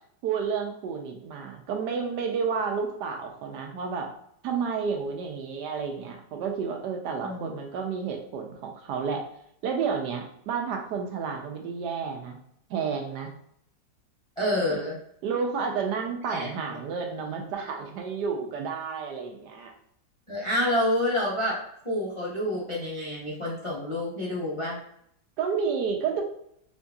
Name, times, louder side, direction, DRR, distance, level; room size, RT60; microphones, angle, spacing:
voice 1, 0.2-4.1 4.4-9.2 9.6-12.4 12.7-13.3 14.7-14.8 15.2-19.7 25.4-26.2, right 6 dB, 75° right, 3 dB, 1.1 m, -31 dB
voice 2, 7.2-7.5 14.4-15.0 16.3-16.6 20.3-21.6 21.8-24.8, left 1 dB, 35° left, -6 dB, 0.4 m, -28 dB
4.5 x 2.6 x 2.3 m, 0.72 s
omnidirectional pair, 1.9 m